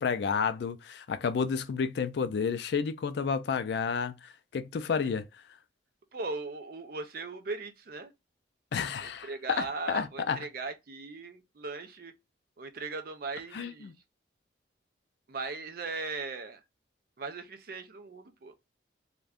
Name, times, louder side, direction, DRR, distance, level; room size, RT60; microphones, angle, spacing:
voice 1, 0.0-5.3 8.7-9.3 9.6-10.4 13.5-13.9, left 6 dB, 60° left, 0.3 m, -31 dB
voice 2, 6.1-8.1 9.0-12.1 12.6-13.9 15.3-16.6 17.2-18.5, right 3 dB, 50° right, 0.4 m, -38 dB
2.5 x 2.2 x 3.3 m
head